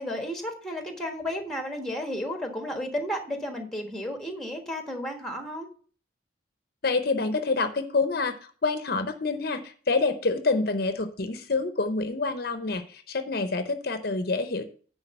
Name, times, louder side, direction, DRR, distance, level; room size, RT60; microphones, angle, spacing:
voice 1, 0.0-5.7, equal, ahead, 4 dB, 1.3 m, -33 dB
voice 2, 6.8-14.7, left 3 dB, 55° left, 9 dB, 0.7 m, -27 dB
10.0 x 3.9 x 6.8 m, 0.43 s
head